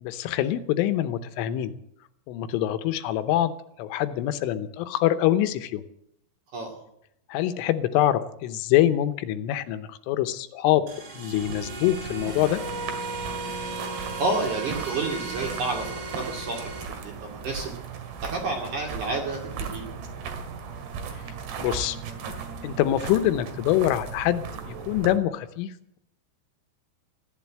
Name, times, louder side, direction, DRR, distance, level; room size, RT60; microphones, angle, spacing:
voice 1, 0.0-1.7 2.3-3.5 3.8-5.8 7.3-10.8 11.1-12.6 21.6-22.0 22.6-26.0, left 13 dB, 85° left, 10 dB, 3.4 m, -25 dB
sound 1, 10.9-16.8, right 3 dB, 80° right, 6.4 m, -35 dB
sound 2, 11.3-25.2, right 6 dB, 65° right, 3.6 m, -37 dB
voice 2, 14.2-17.7 18.2-19.8, right 3 dB, 45° right, 1 dB, 3.0 m, -30 dB
15.0 x 10.5 x 8.7 m, 0.73 s
omnidirectional pair, 5.7 m